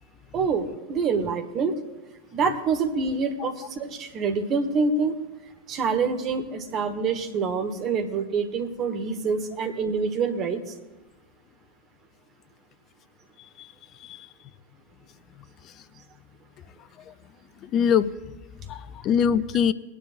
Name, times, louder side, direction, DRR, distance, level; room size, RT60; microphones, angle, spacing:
voice 1, 0.3-1.8 2.3-5.2 5.7-10.6, right 4 dB, 30° right, 7 dB, 1.4 m, -26 dB
voice 2, 17.6-18.1 18.7-19.7, left 8 dB, 30° left, 13 dB, 0.5 m, -23 dB
21.5 x 10.0 x 2.5 m, 1.1 s
figure-of-eight pair, 90°, 0 cm